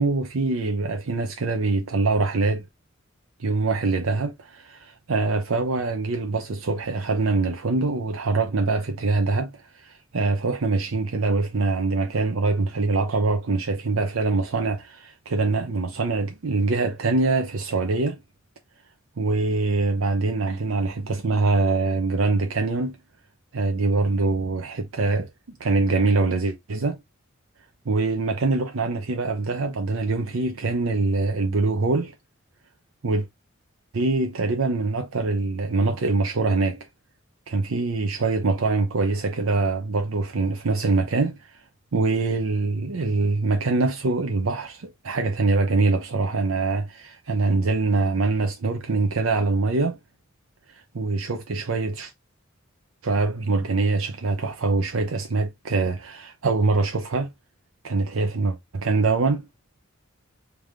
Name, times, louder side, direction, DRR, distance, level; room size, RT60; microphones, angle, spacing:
voice 1, 0.0-2.6 3.4-18.2 19.2-23.0 23.5-25.3 25.6-27.0 27.9-32.1 33.0-33.3 33.9-36.9 37.5-41.6 41.9-50.0 50.7-52.1 53.0-57.3 57.8-59.5, right 3 dB, 85° right, 0.6 m, -24 dB
3.4 x 3.3 x 3.6 m
head